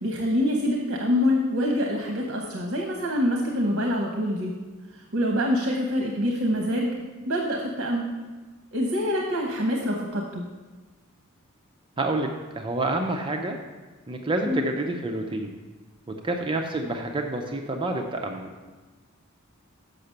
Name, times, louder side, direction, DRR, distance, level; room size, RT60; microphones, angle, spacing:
voice 1, 0.0-4.5 5.1-6.9 7.3-8.0 8.7-10.4 14.4-14.6, left 1 dB, 60° right, 1 dB, 1.0 m, -25 dB
voice 2, 12.0-12.3 12.5-13.6 14.1-15.6 16.1-18.5, right 2 dB, 25° right, 3 dB, 0.5 m, -28 dB
6.8 x 5.8 x 6.5 m, 1.3 s
head